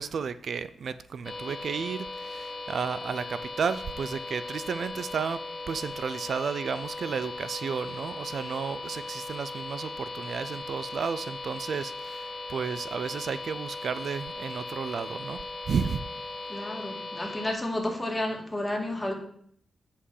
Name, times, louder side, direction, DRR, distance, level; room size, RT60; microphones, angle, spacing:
voice 1, 0.0-5.4 5.7-15.4 15.7-16.0, right 6 dB, 65° right, 14 dB, 0.4 m, -32 dB
sound 1, 1.2-17.5, left 2 dB, 40° left, 1.1 m, -38 dB
voice 2, 16.5-19.1, left 1 dB, 15° left, 1 dB, 2.1 m, -31 dB
8.3 x 5.7 x 4.8 m, 0.64 s
cardioid pair, 90°, 0 cm